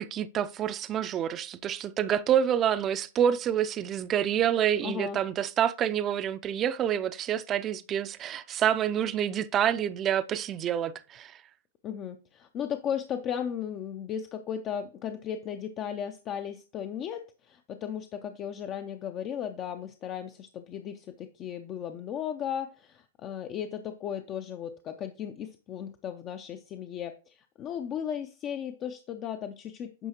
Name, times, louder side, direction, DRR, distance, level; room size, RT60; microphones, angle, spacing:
voice 1, 0.0-11.4, right 9 dB, 30° right, 0.5 m, -27 dB
voice 2, 4.8-5.2 11.8-30.1, left 9 dB, 35° left, 0.5 m, -36 dB
9.0 x 5.5 x 2.9 m
hypercardioid pair, 115°, 0 cm